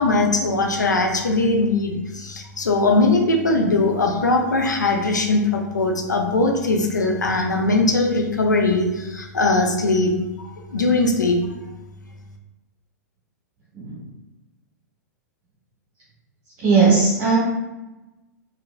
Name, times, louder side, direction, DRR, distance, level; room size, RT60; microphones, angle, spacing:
voice 1, 0.0-11.4, left 2 dB, 80° left, 2 dB, 0.6 m, -20 dB
voice 2, 16.6-17.4, right 4 dB, 35° right, -8 dB, 1.2 m, -17 dB
4.5 x 2.4 x 2.4 m, 1.0 s
figure-of-eight pair, 100°, 10 cm